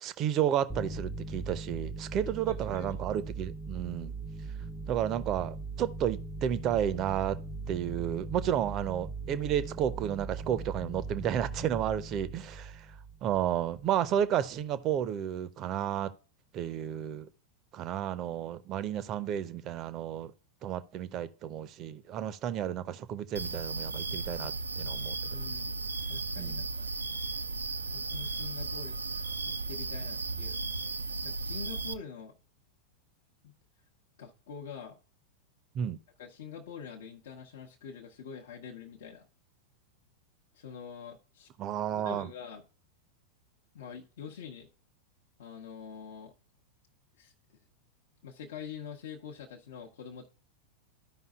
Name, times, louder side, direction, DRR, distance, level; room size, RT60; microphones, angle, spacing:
voice 1, 0.0-4.1 4.9-7.4 7.7-12.9 13.2-16.1 16.5-17.3 17.7-20.3 20.6-25.2 26.4-26.6 35.7-36.0 41.6-42.3, right 10 dB, 35° right, 0.6 m, -32 dB
sound 1, 0.7-13.9, right 3 dB, 5° left, 0.6 m, -40 dB
voice 2, 2.5-3.0 25.3-25.7 26.1-27.2 27.9-30.6 31.2-32.4 33.4-33.5 34.2-35.0 36.2-39.3 40.5-41.5 42.0-42.6 43.7-44.7 45.4-46.3 47.2-47.3 48.2-50.3, left 6 dB, 55° left, 0.9 m, -45 dB
sound 2, 23.4-31.9, right 3 dB, 75° right, 0.4 m, -35 dB
13.5 x 5.4 x 2.3 m
figure-of-eight pair, 90°, 0 cm